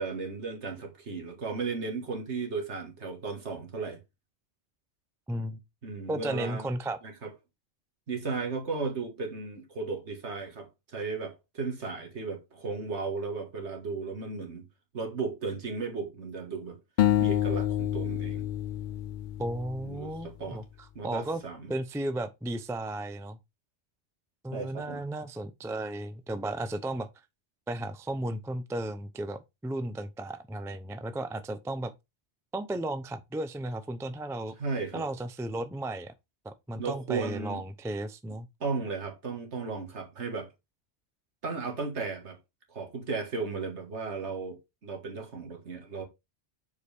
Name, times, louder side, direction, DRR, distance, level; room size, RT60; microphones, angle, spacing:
voice 1, 0.0-4.0 5.8-6.7 7.0-7.3 8.1-14.7 14.9-16.8 17.2-18.5 19.8-20.6 21.0-21.7 24.5-25.0 34.6-35.0 36.8-37.6 38.6-40.5 41.4-42.4 42.7-46.0, right 4 dB, 75° right, 2.0 m, -35 dB
voice 2, 5.3-5.6 6.1-7.0 19.4-20.6 21.0-21.4 21.7-23.4 24.4-27.1 27.7-31.9 32.5-34.6 34.9-36.1 36.4-38.5, right 1 dB, 5° right, 0.3 m, -34 dB
sound 1, 17.0-20.2, left 12 dB, 55° left, 0.6 m, -28 dB
6.9 x 4.8 x 3.4 m
omnidirectional pair, 1.2 m